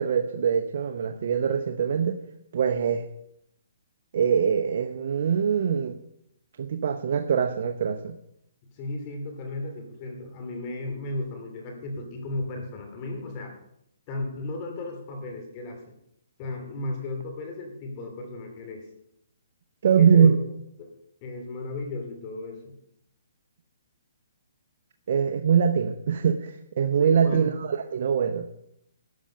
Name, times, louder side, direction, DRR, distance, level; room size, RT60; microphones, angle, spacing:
voice 1, 0.0-2.2 2.5-3.0 4.1-6.0 6.6-8.1 19.8-20.4 25.1-28.5, right 7 dB, 55° right, 5 dB, 0.8 m, -23 dB
voice 2, 8.7-13.5 14.1-15.9 16.4-18.9 20.0-20.3 21.2-22.8 26.8-27.5, left 2 dB, 35° left, 4 dB, 2.6 m, -35 dB
12.5 x 8.8 x 5.6 m, 0.76 s
hypercardioid pair, 145°, 0 cm